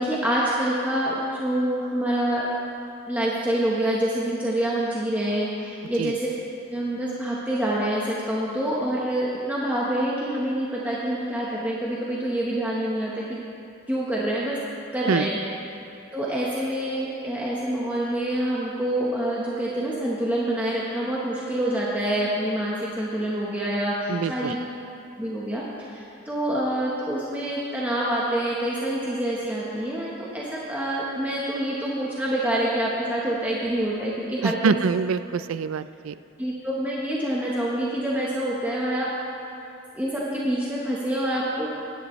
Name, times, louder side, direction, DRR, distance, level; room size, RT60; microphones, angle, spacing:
voice 1, 0.0-2.5 3.1-6.3 6.7-13.4 13.9-14.6 14.9-15.4 16.1-24.6 25.2-34.8 36.4-39.1 39.9-41.7, right 1 dB, 5° right, -6 dB, 1.0 m, -26 dB
voice 2, 24.1-24.6 34.4-36.1, right 6 dB, 75° right, 14 dB, 0.3 m, -25 dB
16.5 x 11.0 x 3.1 m, 2.6 s
head